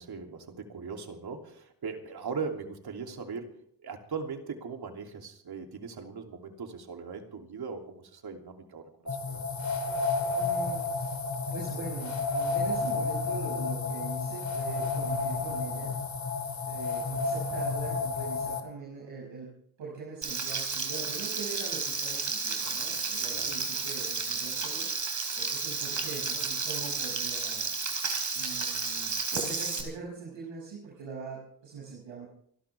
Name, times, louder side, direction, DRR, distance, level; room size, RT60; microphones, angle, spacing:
voice 1, 0.0-3.6 3.8-9.4 23.3-23.5, right 5 dB, 55° right, 3 dB, 3.0 m, -39 dB
sound 1, 9.1-18.6, left 3 dB, 40° left, 3.0 m, -31 dB
voice 2, 10.3-11.2 11.5-16.0 16.6-27.7 28.3-32.3, right 4 dB, 80° right, -3 dB, 6.4 m, -42 dB
Frying (food), 20.2-29.8, right 4 dB, 40° right, 4.5 m, -32 dB
29.0 x 12.0 x 3.5 m, 0.63 s
cardioid pair, 80°, 45 cm